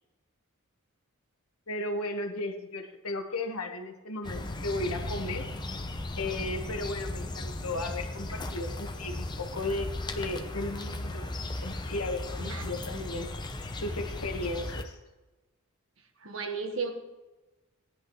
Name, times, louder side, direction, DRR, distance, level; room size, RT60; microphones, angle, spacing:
voice 1, 1.7-5.5 6.2-11.3 11.6-13.3 13.8-15.0, left 2 dB, 85° left, 5 dB, 1.4 m, -35 dB
sound 1, 4.2-14.8, left 2 dB, 20° left, 0.7 m, -36 dB
voice 2, 12.4-13.1 16.2-16.9, right 4 dB, 60° right, 5 dB, 1.4 m, -35 dB
17.5 x 10.5 x 3.1 m, 1.1 s
head